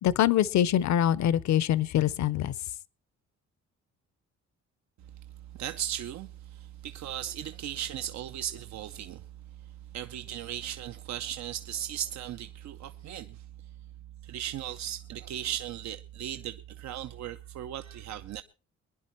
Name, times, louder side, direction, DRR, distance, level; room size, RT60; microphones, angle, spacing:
voice 1, 0.0-2.5, left 11 dB, 65° left, 0.7 m, -24 dB
voice 2, 5.6-9.2 9.9-13.4 14.2-18.4, right 11 dB, 65° right, 0.6 m, -37 dB
23.0 x 10.5 x 4.4 m
cardioid pair, 90°, 30 cm